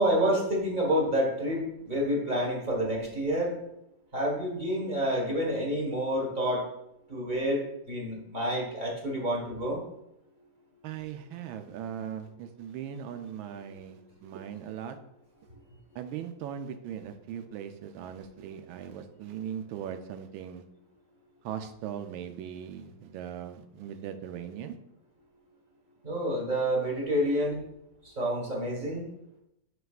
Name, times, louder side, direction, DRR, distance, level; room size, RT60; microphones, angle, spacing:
voice 1, 0.0-3.5 4.1-6.6 7.1-9.8 26.0-27.6 28.0-29.0, equal, 25° right, -2 dB, 1.3 m, -28 dB
voice 2, 10.8-15.0 15.9-20.6 21.4-24.8, right 9 dB, 85° right, 8 dB, 1.4 m, -39 dB
6.7 x 6.5 x 2.4 m, 0.83 s
omnidirectional pair, 2.1 m